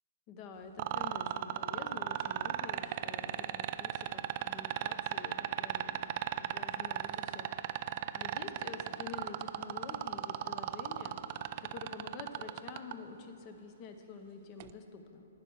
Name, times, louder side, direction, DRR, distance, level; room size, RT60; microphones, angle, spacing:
voice 1, 0.3-7.9 8.1-11.2 11.6-15.3, left 4 dB, 30° left, 6 dB, 0.8 m, -48 dB
sound 1, 0.8-12.9 14.6-14.7, right 14 dB, 40° right, 0.3 m, -35 dB
11.0 x 9.0 x 4.6 m, 2.9 s
hypercardioid pair, 150°, 0 cm